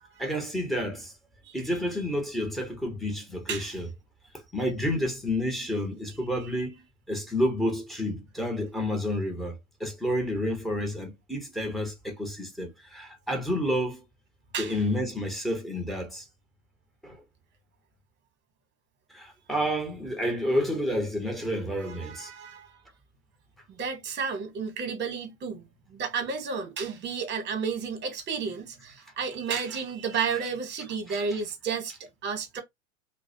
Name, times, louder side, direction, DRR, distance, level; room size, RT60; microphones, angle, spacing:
voice 1, 0.2-1.1 1.5-3.9 4.5-14.0 14.6-16.2 17.0-17.2 19.1-22.3 31.1-31.2, equal, ahead, 0.8 m, -30 dB
voice 2, 21.8-22.7 23.7-25.6 25.9-31.9 32.2-32.6, right 5 dB, 25° right, 1.0 m, -32 dB
2.3 x 2.1 x 2.6 m
hypercardioid pair, 100°, 41 cm